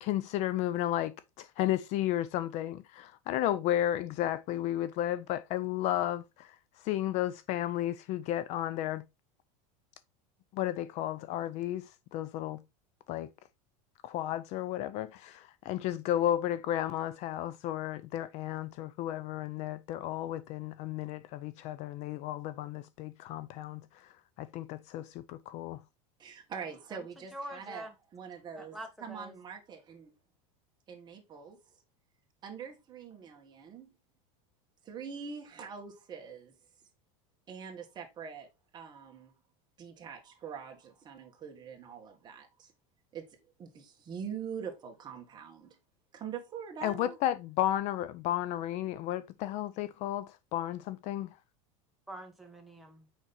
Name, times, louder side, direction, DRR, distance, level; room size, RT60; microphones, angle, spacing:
voice 1, 0.0-9.0 10.5-12.6 13.1-13.3 14.0-25.8 46.8-51.4, left 12 dB, 40° left, 0.5 m, -33 dB
voice 2, 26.2-27.9 28.1-30.1 30.9-31.6 32.4-33.9 34.8-36.5 37.5-38.5 38.7-39.3 39.8-42.7 43.1-43.3 43.6-45.8 46.1-47.2, right 7 dB, 25° right, 1.7 m, -44 dB
voice 3, 27.3-27.9 28.5-29.3 52.1-53.1, right 1 dB, ahead, 1.5 m, -45 dB
6.3 x 5.2 x 4.2 m
supercardioid pair, 150°, 17 cm